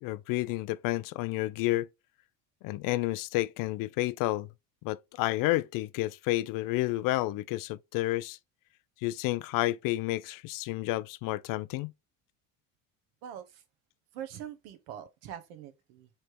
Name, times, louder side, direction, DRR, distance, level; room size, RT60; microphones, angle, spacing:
voice 1, 0.0-1.9 2.6-4.5 4.8-8.4 9.0-11.9, left 17 dB, 55° left, 0.4 m, -30 dB
voice 2, 13.2-13.6 14.1-16.1, right 10 dB, 65° right, 1.0 m, -43 dB
3.3 x 3.1 x 4.5 m
supercardioid pair, 95°, 40 cm